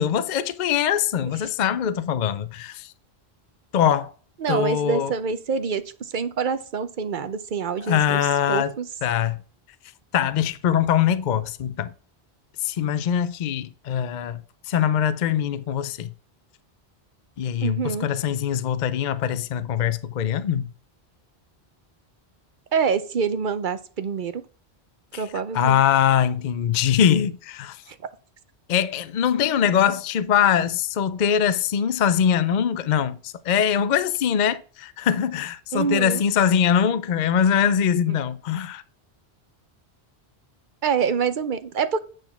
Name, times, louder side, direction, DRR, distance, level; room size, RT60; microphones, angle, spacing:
voice 1, 0.0-2.9 3.7-4.1 4.5-5.1 7.8-8.7 9.0-9.4 10.1-11.9 12.6-14.4 14.7-16.1 17.4-20.7 25.1-25.2 25.5-27.8 28.7-38.8, left 8 dB, 55° left, 0.6 m, -22 dB
voice 2, 4.4-8.9 17.6-18.1 22.7-24.4 25.1-25.8 27.9-28.0 35.7-36.2 38.1-38.2 40.8-42.0, right 6 dB, 55° right, 0.8 m, -26 dB
9.1 x 4.0 x 5.7 m
omnidirectional pair, 1.1 m